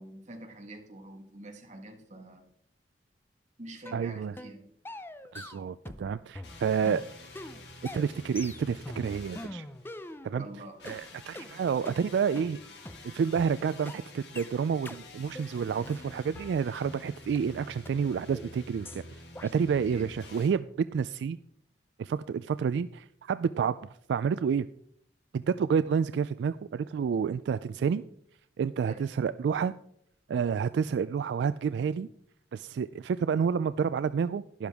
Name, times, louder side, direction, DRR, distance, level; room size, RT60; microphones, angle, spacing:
voice 1, 0.0-2.4 3.6-4.6 10.4-10.8 19.9-20.1 28.8-29.1, right 1 dB, 45° right, 3 dB, 1.6 m, -46 dB
sound 1, 3.9-4.0 4.4-4.6 4.9-6.1 6.3-10.5 10.9-11.0 11.4-11.5 11.9-12.0 12.4-12.5 12.9-13.0 13.4-13.5 13.9-14.0 14.4-14.5 14.9-15.0 15.4-15.5 15.8-17.0 17.4-17.5 17.9-18.0 18.4-18.5 18.9-19.0 19.4-19.5, left 1 dB, 15° left, 0.5 m, -43 dB
voice 2, 3.9-4.3 5.3-7.0 7.9-9.7 10.2-10.4 10.8-12.6 13.1-21.4 22.0-24.7 25.3-28.0 28.6-29.7 30.3-32.1 32.5-34.7, right 6 dB, 80° right, 14 dB, 0.3 m, -29 dB
sound 2, 6.4-10.2 10.8-20.5, left 2 dB, 75° left, 2.2 m, -49 dB
12.0 x 11.0 x 3.5 m, 0.69 s
head